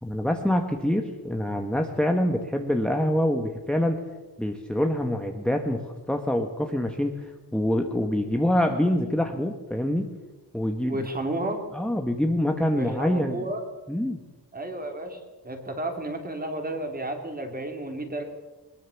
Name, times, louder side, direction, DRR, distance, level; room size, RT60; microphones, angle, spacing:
voice 1, 0.0-4.0 4.4-10.1 10.5-11.1 11.7-13.4 13.9-14.2, left 1 dB, ahead, 3 dB, 1.3 m, -25 dB
voice 2, 10.9-11.6 12.7-13.6 14.5-18.2, right 1 dB, 20° right, 4 dB, 3.1 m, -32 dB
22.0 x 21.0 x 7.2 m, 1.2 s
wide cardioid pair, 175°, 40 cm